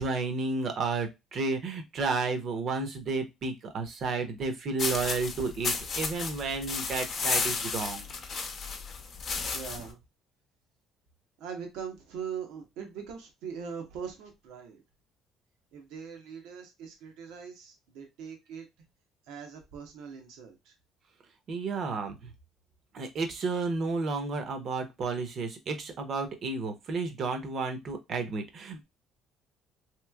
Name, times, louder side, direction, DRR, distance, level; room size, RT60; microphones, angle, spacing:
voice 1, 0.0-8.1 21.5-22.3 22.9-28.8, right 4 dB, 55° right, 6 dB, 0.8 m, -32 dB
sound 1, 4.8-9.9, left 5 dB, 50° left, 0.7 m, -33 dB
voice 2, 9.5-10.0 11.4-14.8 15.7-18.7 19.3-20.7, right 7 dB, 85° right, 4 dB, 0.9 m, -41 dB
3.0 x 2.9 x 2.2 m, 0.22 s
cardioid pair, 100°, 0 cm